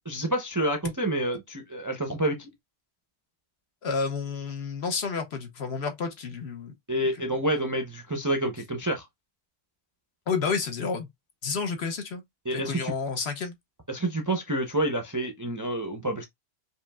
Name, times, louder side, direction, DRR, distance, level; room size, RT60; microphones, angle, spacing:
voice 1, 0.1-2.5 6.9-9.0 12.5-12.9 13.9-16.2, right 1 dB, 25° right, 0.4 m, -28 dB
voice 2, 3.8-6.7 7.2-7.3 10.3-11.1 11.4-12.2 12.5-13.6, left 5 dB, 60° left, 1.1 m, -30 dB
5.0 x 2.8 x 2.2 m
omnidirectional pair, 1.3 m